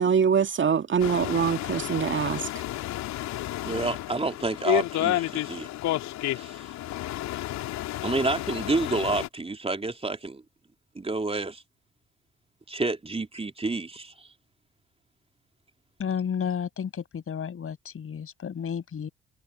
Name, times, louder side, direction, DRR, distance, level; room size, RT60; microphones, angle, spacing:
voice 1, 0.0-2.5, right 7 dB, 40° right, 2.0 m, -24 dB
sound 1, 1.0-9.3, left 14 dB, 60° left, 3.2 m, -31 dB
voice 2, 3.6-5.7 6.3-6.7 8.0-10.4 10.9-11.6 12.7-14.3, right 3 dB, 20° right, 2.8 m, -29 dB
voice 3, 16.0-19.1, left 7 dB, 45° left, 7.0 m, -32 dB
figure-of-eight pair, 45°, 31 cm